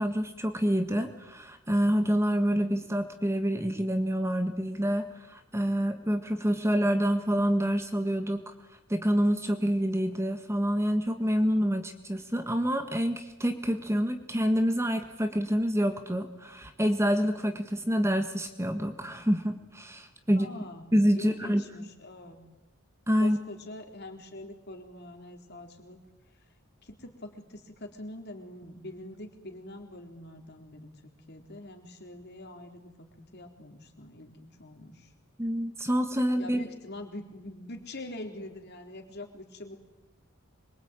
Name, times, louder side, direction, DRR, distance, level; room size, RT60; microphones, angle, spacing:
voice 1, 0.0-8.5 8.9-20.5 20.9-21.6 23.1-23.4 35.4-36.6, equal, 10° right, 6 dB, 1.6 m, -27 dB
voice 2, 20.4-20.8 21.1-22.4 23.2-26.0 26.8-35.1 36.4-39.8, left 1 dB, 50° left, 4 dB, 3.9 m, -44 dB
26.0 x 23.5 x 9.1 m, 1.0 s
head